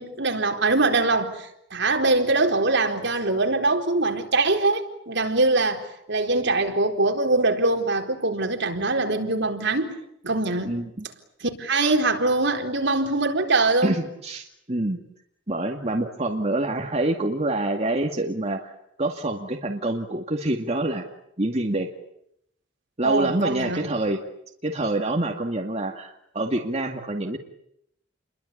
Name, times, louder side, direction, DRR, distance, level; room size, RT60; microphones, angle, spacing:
voice 1, 0.0-10.0 10.2-10.7 11.4-14.0 23.0-23.9, right 2 dB, 60° right, 4.2 m, -23 dB
voice 2, 10.7-11.1 13.8-15.0 15.5-18.7 19.0-21.1 21.4-21.9 23.0-24.2 24.6-27.4, right 2 dB, 30° right, 2.2 m, -26 dB
30.0 x 23.0 x 8.5 m
head